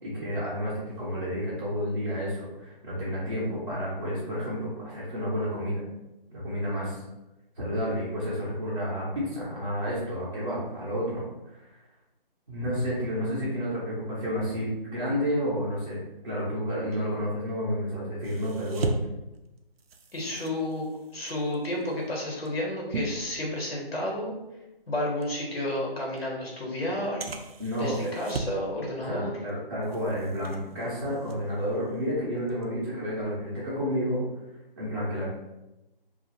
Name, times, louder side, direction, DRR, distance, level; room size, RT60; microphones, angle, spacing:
voice 1, 0.0-5.8 6.3-7.0 7.6-11.3 11.6-11.7 12.5-16.0 16.2-18.9 27.6-28.1 29.0-34.2 34.8-35.3, equal, 30° right, -9 dB, 0.6 m, -30 dB
sound 1, 18.2-24.0 24.4-24.6 25.2-25.3 26.2-26.3 27.2-28.7 29.0-29.5 29.8-32.0 32.4-32.6, right 3 dB, 80° right, 0.5 m, -38 dB
voice 2, 20.1-20.9 21.1-24.3 24.9-27.3 27.8-29.4, left 1 dB, 85° left, -2 dB, 1.1 m, -31 dB
2.5 x 2.4 x 2.8 m, 0.96 s
figure-of-eight pair, 165°, 30 cm